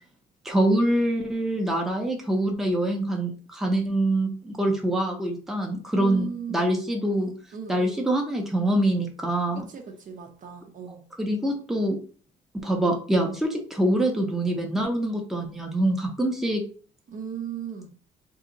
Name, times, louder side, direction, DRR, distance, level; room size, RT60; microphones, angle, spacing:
voice 1, 0.4-7.3 7.7-9.7 11.2-12.0 12.6-16.6, right 1 dB, ahead, 0.6 m, -25 dB
voice 2, 6.0-6.7 7.5-8.0 9.5-11.0 17.1-17.9, right 7 dB, 45° right, 0.6 m, -36 dB
2.7 x 2.5 x 3.8 m
cardioid pair, 125°, 19 cm